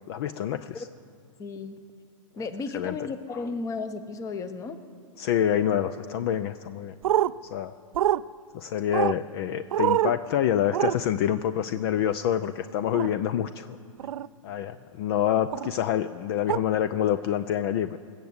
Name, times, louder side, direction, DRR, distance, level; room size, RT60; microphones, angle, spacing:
voice 1, 0.1-0.8 2.7-3.0 3.3-3.4 5.2-7.0 7.4-7.7 8.5-13.8 14.4-18.0, left 10 dB, 45° left, 13 dB, 0.5 m, -27 dB
voice 2, 1.4-1.8 2.4-4.8, left 4 dB, 20° left, 11 dB, 0.9 m, -34 dB
sound 1, 7.0-7.3 7.9-8.2 8.9-9.2 9.7-10.1 10.7-10.9 12.9-13.1 14.0-14.3 15.5-15.7 16.5-16.6, right 12 dB, 75° right, 0.4 m, -24 dB
20.5 x 7.5 x 8.0 m, 2.2 s
hypercardioid pair, 135°, 18 cm